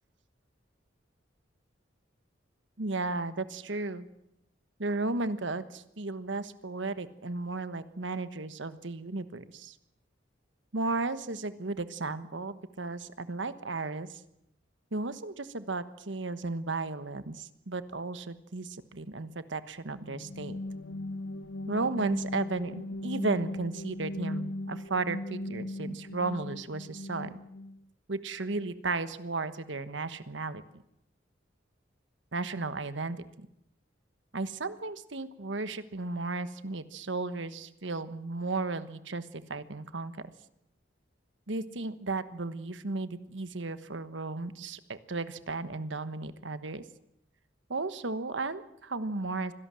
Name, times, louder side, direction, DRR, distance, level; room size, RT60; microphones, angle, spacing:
voice 1, 2.8-4.1 4.8-9.7 10.7-14.2 14.9-20.6 21.7-27.4 28.1-30.8 32.3-33.5 34.3-40.1 41.5-46.8 47.7-49.5, right 3 dB, 75° right, 12 dB, 1.3 m, -34 dB
sound 1, 20.0-27.8, left 1 dB, 90° left, 0.9 m, -38 dB
24.5 x 17.0 x 7.6 m, 0.80 s
head